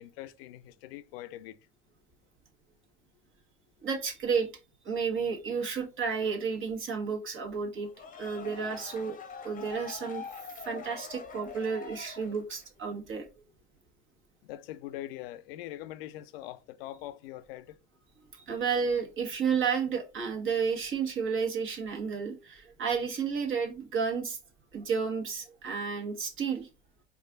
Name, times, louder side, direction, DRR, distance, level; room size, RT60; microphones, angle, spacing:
voice 1, 0.0-1.6 14.4-17.8, left 14 dB, 65° left, 0.5 m, -42 dB
voice 2, 3.8-4.5 4.8-7.9 8.2-9.2 9.4-10.2 10.6-13.2 18.3-24.4 24.7-26.7, right 6 dB, 40° right, 1.4 m, -31 dB
sound 1, 7.8-12.8, left 6 dB, 25° left, 0.9 m, -44 dB
4.6 x 2.4 x 3.8 m
hypercardioid pair, 70°, 31 cm